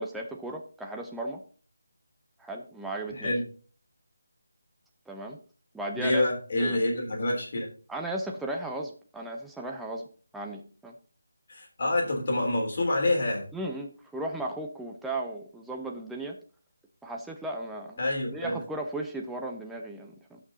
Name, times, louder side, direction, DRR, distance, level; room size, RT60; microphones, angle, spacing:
voice 1, 0.0-1.4 2.4-3.3 5.1-5.4 5.7-6.2 6.6-6.8 7.9-10.1 10.3-10.9 13.5-16.4 17.0-18.0 18.3-20.4, right 2 dB, 5° right, 1 dB, 0.6 m, -36 dB
voice 2, 3.1-3.4 5.9-7.7 11.5-13.4 18.0-18.6, left 1 dB, 45° left, 0 dB, 3.4 m, -27 dB
16.5 x 6.0 x 2.8 m, 0.41 s
figure-of-eight pair, 165°, 0 cm